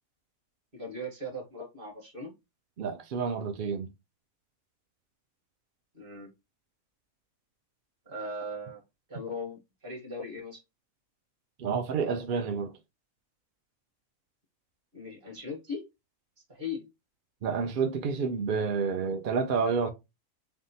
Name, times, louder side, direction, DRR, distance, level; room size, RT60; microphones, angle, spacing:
voice 1, 0.7-2.3 5.9-6.3 8.1-8.8 9.1-10.6 14.9-15.8 16.5-16.9, left 2 dB, 40° right, 1.5 m, -38 dB
voice 2, 2.8-3.9 11.6-12.7 17.4-19.9, right 5 dB, 65° right, 0.5 m, -29 dB
4.0 x 3.5 x 2.7 m
omnidirectional pair, 1.4 m